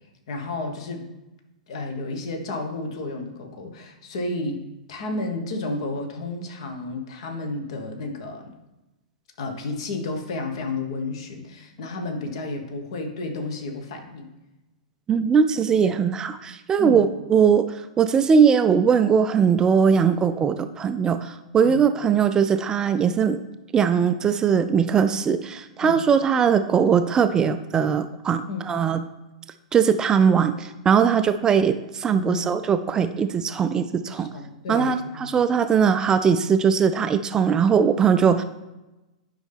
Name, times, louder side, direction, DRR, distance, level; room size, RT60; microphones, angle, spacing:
voice 1, 0.3-1.0 1.7-4.6 4.9-8.5 9.4-14.3 15.8-16.0 16.8-17.0 21.6-21.8 25.8-26.1 28.5-28.7 32.1-32.4 34.0-35.4, left 2 dB, 55° left, 4 dB, 1.3 m, -32 dB
voice 2, 15.1-23.4 23.7-29.0 29.7-34.3 34.7-38.4, right 7 dB, 20° right, 10 dB, 0.3 m, -20 dB
9.7 x 5.4 x 3.5 m, 1.0 s
figure-of-eight pair, 100°, 4 cm